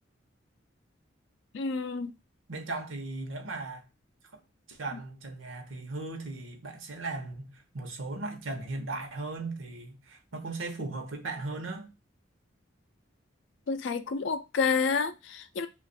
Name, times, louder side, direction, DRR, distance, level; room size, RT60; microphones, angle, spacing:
voice 1, 1.5-2.1 13.7-15.7, left 5 dB, 65° left, 0.4 m, -29 dB
voice 2, 2.5-3.9 4.3-4.4 4.7-11.9, right 2 dB, 90° right, 0.9 m, -37 dB
2.9 x 2.4 x 4.1 m
head